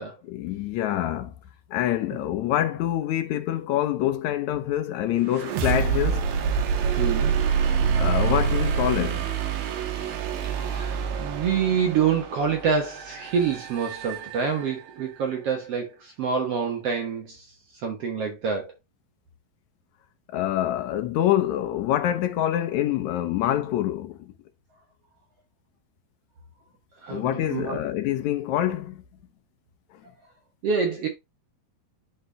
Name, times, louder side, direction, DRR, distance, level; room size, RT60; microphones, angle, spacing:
voice 1, 0.3-1.3 1.7-6.3 8.0-9.3 20.3-24.3 27.1-29.0, left 12 dB, 75° left, 1.8 m, -26 dB
sound 1, 5.3-15.0, right 6 dB, 80° right, 2.9 m, -27 dB
voice 2, 7.0-7.4 10.5-17.5 17.8-18.7 27.0-27.8 30.6-31.1, right 6 dB, 55° right, 1.8 m, -27 dB
12.0 x 4.3 x 2.2 m
omnidirectional pair, 4.0 m